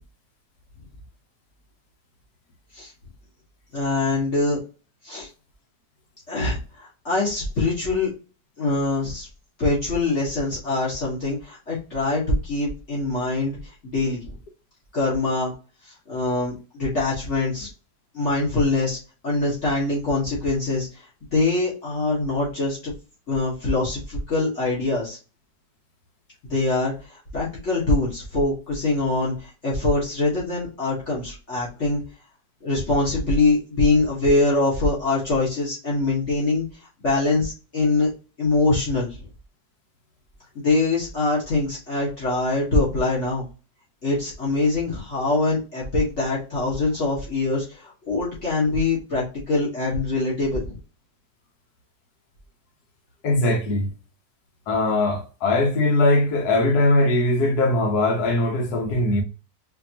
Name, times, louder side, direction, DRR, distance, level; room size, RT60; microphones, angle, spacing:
voice 1, 3.7-4.6 5.0-5.3 6.3-8.1 8.6-9.3 9.6-13.6 13.8-14.3 14.9-15.5 15.8-17.7 18.1-19.0 19.2-21.0 21.3-22.9 23.3-25.2 26.5-32.0 32.6-36.7 37.0-38.1 38.4-39.2 40.5-43.5 44.0-50.7, left 2 dB, 45° left, 1.7 m, -23 dB
voice 2, 53.2-53.9 54.7-59.2, left 2 dB, 65° left, 1.4 m, -20 dB
4.9 x 2.7 x 2.8 m
omnidirectional pair, 1.9 m